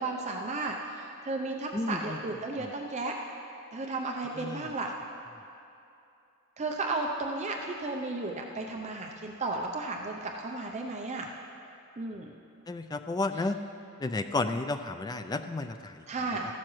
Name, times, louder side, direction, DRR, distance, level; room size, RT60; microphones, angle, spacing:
voice 1, 0.0-3.1 3.7-4.9 6.6-11.3 12.0-12.3 13.4-13.5 16.1-16.5, right 3 dB, 30° right, 1 dB, 0.5 m, -34 dB
voice 2, 1.7-2.2 2.6-2.7 4.4-4.6 12.7-13.6 14.0-16.0, left 2 dB, 20° left, 8 dB, 0.3 m, -32 dB
14.5 x 12.0 x 3.1 m, 2.7 s
head